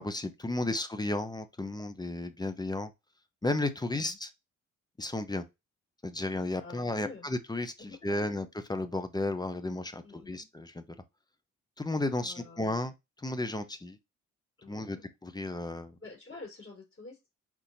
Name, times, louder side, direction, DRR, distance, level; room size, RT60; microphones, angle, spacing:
voice 1, 0.0-2.9 3.4-4.3 5.0-5.4 6.0-7.7 8.0-10.8 11.8-12.9 13.2-14.0 14.7-15.9, left 2 dB, 15° left, 0.7 m, -33 dB
voice 2, 3.8-4.2 6.6-7.3 7.8-8.3 10.0-10.5 12.1-12.8 14.6-15.0 16.0-17.3, left 3 dB, 40° left, 3.2 m, -49 dB
4.4 x 4.1 x 2.7 m
cardioid pair, 90°, 30 cm